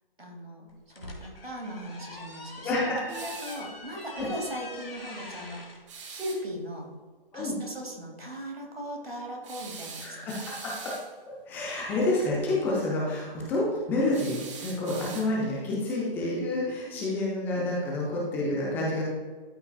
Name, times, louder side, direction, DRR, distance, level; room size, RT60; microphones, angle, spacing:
voice 1, 0.2-5.8 6.1-6.9 7.3-10.5 16.8-17.1, equal, 85° right, 0 dB, 2.4 m, -39 dB
sound 1, 0.7-5.8, left 2 dB, 75° left, 2.0 m, -44 dB
voice 2, 2.6-3.0 4.1-4.3 7.3-7.5 10.0-10.2 11.5-19.0, left 2 dB, 5° left, -4 dB, 0.5 m, -28 dB
sound 2, 3.1-3.7 5.9-6.4 9.4-11.1 14.1-15.6, right 5 dB, 30° right, 1.1 m, -43 dB
12.5 x 5.5 x 2.3 m, 1.4 s
figure-of-eight pair, 135°, 29 cm